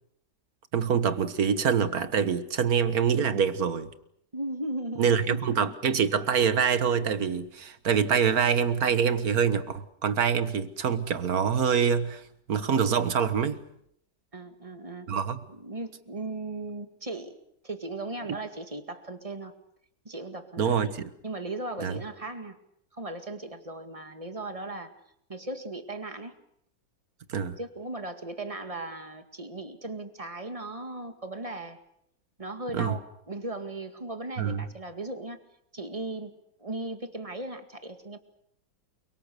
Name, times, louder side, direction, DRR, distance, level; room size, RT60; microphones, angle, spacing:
voice 1, 0.7-3.9 5.0-12.2 12.5-13.6 15.1-15.4 20.6-21.1 21.8-22.0 27.3-27.6 32.7-33.0 34.4-34.7, right 7 dB, 55° right, 1.8 m, -25 dB
voice 2, 4.3-5.4 14.3-15.1 15.5-17.4 17.6-19.5 20.1-20.9 21.2-22.6 22.9-24.9 25.3-26.3 27.6-31.8 32.4-33.0 33.3-35.4 35.7-38.2, right 2 dB, 20° right, 2.0 m, -37 dB
29.0 x 24.0 x 6.8 m
omnidirectional pair, 1.9 m